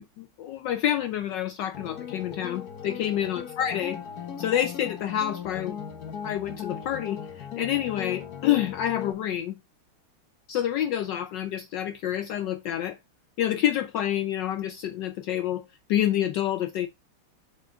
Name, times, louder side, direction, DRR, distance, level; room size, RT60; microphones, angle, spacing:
voice 1, 0.0-4.0 4.4-5.8 6.2-9.6 10.5-13.0 13.4-16.9, left 11 dB, 70° left, 1.1 m, -28 dB
sound 1, 1.7-9.1, left 8 dB, 50° left, 1.5 m, -38 dB
7.3 x 4.7 x 3.9 m
omnidirectional pair, 2.3 m